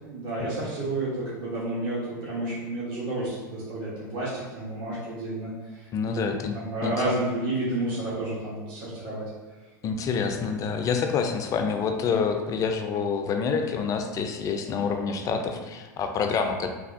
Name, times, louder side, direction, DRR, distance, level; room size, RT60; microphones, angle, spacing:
voice 1, 0.0-9.2 10.1-10.3, right 2 dB, 50° right, -8 dB, 1.0 m, -31 dB
voice 2, 5.9-6.6 6.8-6.9 9.8-16.7, left 5 dB, 35° left, 5 dB, 0.4 m, -27 dB
3.2 x 2.3 x 2.5 m, 1.3 s
hypercardioid pair, 95°, 10 cm